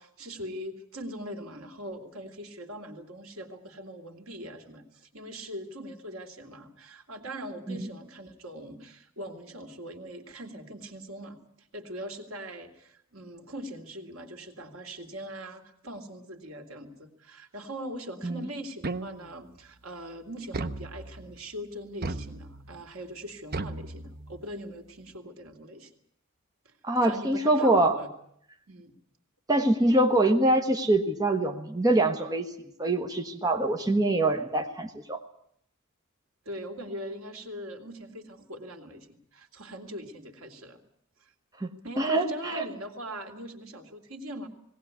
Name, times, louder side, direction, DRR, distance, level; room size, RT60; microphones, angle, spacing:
voice 1, 0.0-25.9 26.6-26.7 27.0-28.1 28.7-28.9 36.5-40.8 41.8-44.5, equal, 75° right, 4 dB, 2.6 m, -41 dB
sound 1, 18.8-19.5 20.5-21.4 22.0-22.8 23.5-24.5, right 3 dB, 45° right, 0.8 m, -36 dB
voice 2, 26.8-27.9 29.5-32.5 32.8-35.2 41.6-41.7 42.0-42.6, right 2 dB, 15° right, 3 dB, 1.2 m, -24 dB
19.0 x 18.0 x 9.6 m, 0.70 s
head